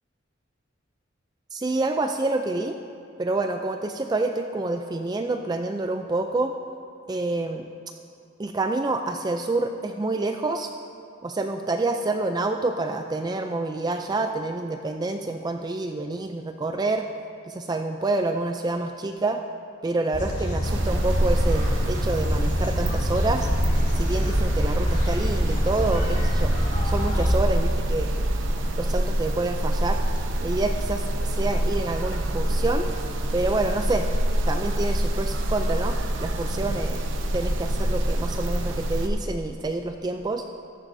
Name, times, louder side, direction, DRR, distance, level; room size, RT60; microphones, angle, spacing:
voice 1, 1.5-2.7 3.2-6.5 7.1-7.7 8.4-10.7 11.2-17.1 17.5-19.4 19.8-23.5 23.9-26.5 26.8-28.1 28.8-30.0 30.4-32.9 33.3-34.1 34.5-37.0 37.3-40.4, right 2 dB, 20° right, 5 dB, 0.3 m, -27 dB
sound 1, 20.1-27.3, equal, 35° left, 2.0 m, -26 dB
sound 2, 20.6-39.1, right 1 dB, 65° right, 0.8 m, -26 dB
14.0 x 11.5 x 2.7 m, 2.5 s
head